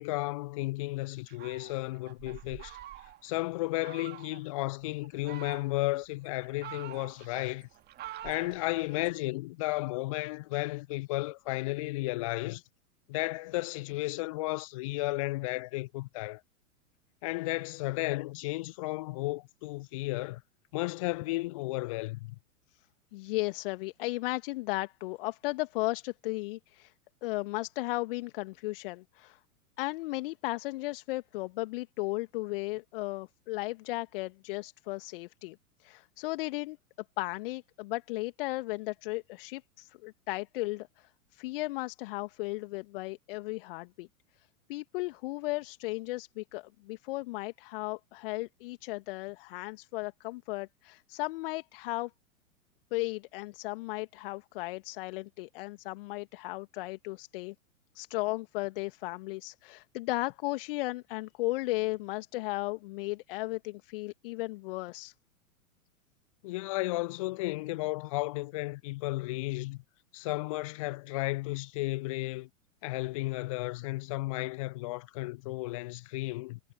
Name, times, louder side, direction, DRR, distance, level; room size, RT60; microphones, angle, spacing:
voice 1, 0.0-2.8 3.2-7.7 8.2-12.6 13.1-16.4 17.2-20.4 20.7-22.4 66.4-69.8 70.1-72.5 72.8-76.6, left 21 dB, 25° left, 0.5 m, -33 dB
Fowl, 1.3-3.3 3.8-4.4 5.0-6.0 6.4-9.2, right 13 dB, 25° right, 2.4 m, -47 dB
voice 2, 23.1-26.9 27.2-29.4 29.8-36.8 37.2-44.1 44.7-52.1 52.9-57.5 57.9-65.1, left 21 dB, 40° left, 1.8 m, -35 dB
figure-of-eight pair, 100°, 42 cm